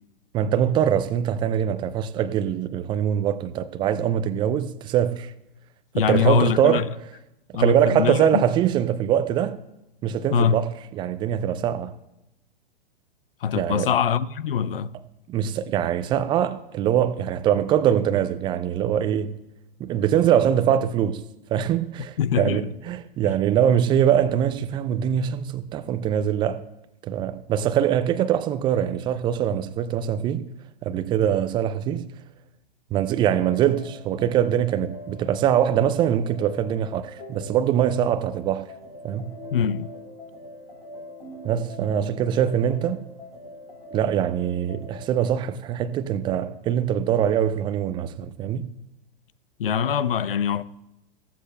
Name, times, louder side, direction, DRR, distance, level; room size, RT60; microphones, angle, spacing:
voice 1, 0.3-5.3 6.0-6.9 7.6-9.6 10.0-11.9 13.6-13.9 15.3-19.4 19.8-21.2 21.5-26.6 27.1-30.5 30.8-32.1 32.9-38.7 39.0-39.3 41.4-43.0 43.9-48.7, right 9 dB, 15° right, 0.4 m, -23 dB
voice 2, 5.9-6.9 7.5-8.4 10.3-10.6 13.4-14.9 22.2-22.7 39.5-39.9 49.6-50.6, left 7 dB, 70° left, 0.6 m, -23 dB
sound 1, 33.2-45.1, left 1 dB, 85° left, 3.3 m, -43 dB
15.0 x 14.0 x 2.2 m
figure-of-eight pair, 105°, 29 cm